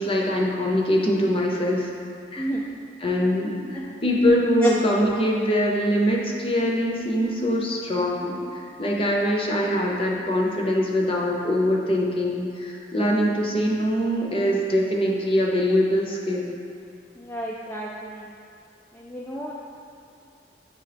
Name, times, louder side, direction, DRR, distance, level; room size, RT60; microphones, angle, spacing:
voice 1, 0.0-1.9 2.3-2.5 3.0-16.5, equal, 30° left, -2 dB, 0.7 m, -23 dB
voice 2, 2.4-2.7 4.6-4.7 17.2-18.3 18.9-19.5, right 1 dB, 10° left, -5 dB, 0.3 m, -30 dB
9.1 x 3.2 x 3.4 m, 2.4 s
head